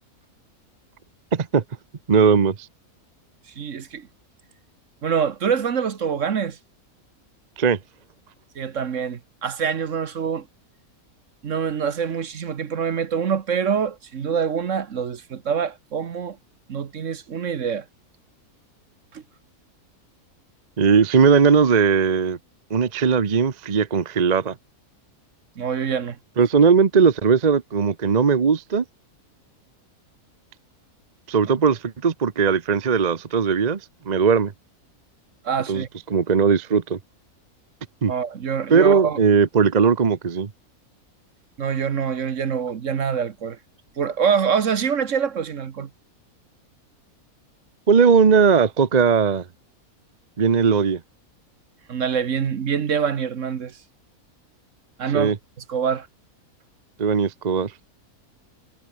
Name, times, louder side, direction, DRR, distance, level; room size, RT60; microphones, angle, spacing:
voice 1, 1.3-1.6 2.1-2.5 7.6-7.8 20.8-22.4 22.7-24.5 26.4-28.8 31.3-33.8 34.1-34.5 35.7-35.8 36.1-37.0 38.0-38.1 38.7-40.5 47.9-49.4 50.4-51.0 55.1-55.4 57.0-57.7, right 6 dB, 35° right, 0.9 m, -18 dB
voice 2, 3.6-4.1 5.0-6.6 8.5-10.5 11.4-16.4 16.7-17.8 19.1-19.2 25.6-26.2 35.4-35.9 38.1-39.2 41.6-43.6 44.0-45.9 51.9-53.8 55.0-55.3 55.7-56.1, right 7 dB, 55° right, 1.4 m, -25 dB
omnidirectional pair, 1.6 m